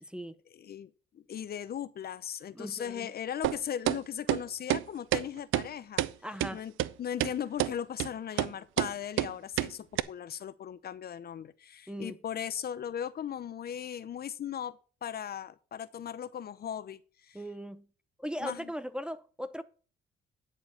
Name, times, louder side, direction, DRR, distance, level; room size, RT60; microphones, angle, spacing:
voice 1, 0.0-0.3 2.5-3.1 6.2-6.6 11.9-12.2 17.3-17.9 18.2-19.6, equal, 5° right, 0.6 m, -38 dB
voice 2, 0.5-6.0 6.5-6.7 7.0-17.4 18.4-18.7, left 9 dB, 50° left, 0.7 m, -38 dB
sound 1, 3.4-3.6 3.9-4.0 4.3-4.4 4.7-4.8 5.1-5.2 5.5-5.7 6.0-6.1 6.4-6.5 6.8-6.9 7.2-7.3 7.6-7.7 8.0-8.1 8.4-8.5 8.8-8.9 9.2-9.3 9.6-9.7 10.0-10.1, right 14 dB, 90° right, 0.5 m, -28 dB
10.5 x 4.6 x 6.9 m
cardioid pair, 90°, 20 cm